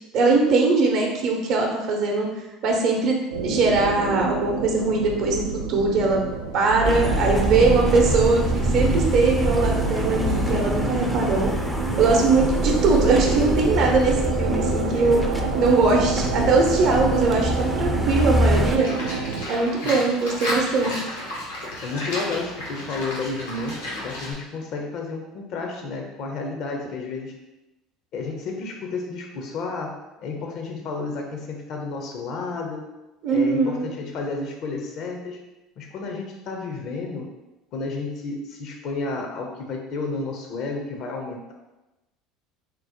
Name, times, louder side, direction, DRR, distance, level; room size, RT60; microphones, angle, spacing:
voice 1, 0.1-2.3 2.6-3.2 3.4-6.2 6.5-11.5 12.0-15.2 15.6-18.9 19.5-21.0 33.2-33.9, right 3 dB, 60° right, 0 dB, 0.7 m, -21 dB
sound 1, 3.3-19.4, right 4 dB, 85° right, 0.4 m, -28 dB
sound 2, 6.8-18.8, equal, ahead, 0.4 m, -25 dB
voice 2, 14.7-15.3 18.1-18.3 19.8-20.0 21.8-27.3 28.1-32.9 33.3-35.4 35.8-37.3 37.7-41.5, left 3 dB, 55° left, 1 dB, 0.6 m, -31 dB
Livestock farm animals working animals, 18.8-24.3, left 1 dB, 85° left, 0.9 m, -32 dB
3.6 x 2.0 x 2.8 m, 1.0 s
hypercardioid pair, 75°, 0 cm